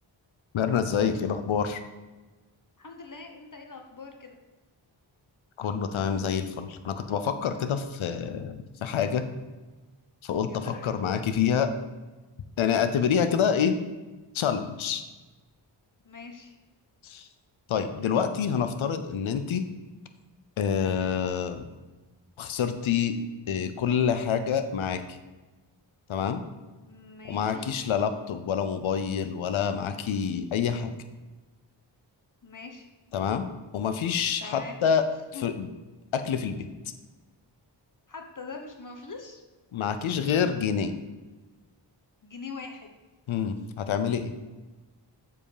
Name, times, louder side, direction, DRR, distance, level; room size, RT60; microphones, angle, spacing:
voice 1, 0.5-1.8 5.6-9.2 10.2-11.7 12.6-13.7 14.3-15.0 17.0-17.3 17.7-19.6 20.6-21.6 22.4-23.1 23.5-25.2 26.1-26.4 27.3-30.9 33.1-33.5 33.7-35.0 35.4-35.7 36.1-36.7 39.7-40.9 43.3-44.3, left 7 dB, 85° left, 9 dB, 0.7 m, -27 dB
voice 2, 2.8-4.4 10.5-11.0 16.0-16.5 26.8-27.7 32.4-32.8 34.4-34.8 35.3-35.4 38.1-39.4 42.2-42.9 44.5-44.6, left 4 dB, 40° left, 4 dB, 1.0 m, -42 dB
7.4 x 4.8 x 4.9 m, 1.2 s
cardioid pair, 55°, 46 cm